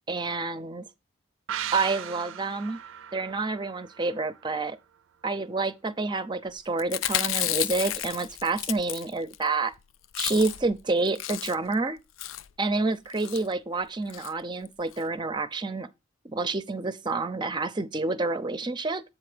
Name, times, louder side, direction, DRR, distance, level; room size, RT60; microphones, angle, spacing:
voice 1, 0.1-0.8 1.7-2.8 3.1-4.8 5.2-9.7 10.2-12.0 12.6-15.9 16.2-19.0, right 3 dB, 25° right, 0.5 m, -28 dB
sound 1, 1.5-4.9 5.2-5.3, right 10 dB, 85° right, 0.4 m, -38 dB
Chewing mastication, 6.8-9.4 9.7-9.8 10.0-10.7 11.0-11.7 12.2-12.5 13.1-13.4 14.1-14.3 14.6-14.7 14.9-15.0, left 13 dB, 85° left, 0.4 m, -31 dB
7.4 x 4.3 x 4.9 m
head